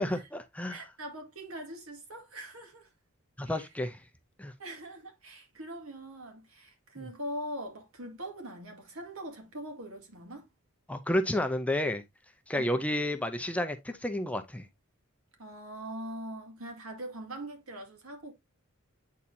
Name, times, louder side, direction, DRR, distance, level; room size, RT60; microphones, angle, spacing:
voice 1, 0.0-0.8 3.4-4.0 4.4-4.5 7.0-7.1 10.9-12.0 12.5-14.7, left 1 dB, 5° left, 0.5 m, -31 dB
voice 2, 0.7-2.9 3.4-3.6 4.6-10.5 12.5-12.7 15.4-18.3, right 1 dB, 70° right, 2.0 m, -42 dB
8.5 x 4.2 x 2.7 m
head